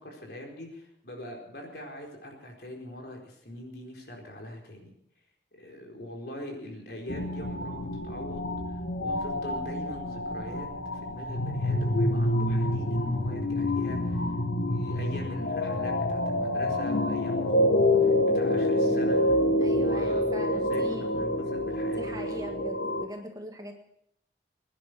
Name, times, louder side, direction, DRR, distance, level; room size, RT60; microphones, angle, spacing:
voice 1, 0.0-4.9 5.5-14.3 14.7-22.2, left 1 dB, 60° left, 0 dB, 4.3 m, -42 dB
sound 1, 7.1-23.1, left 1 dB, 85° left, 1.4 m, -27 dB
voice 2, 19.6-21.3 21.9-23.7, equal, 20° right, 3 dB, 1.8 m, -41 dB
22.0 x 10.5 x 6.2 m, 0.73 s
head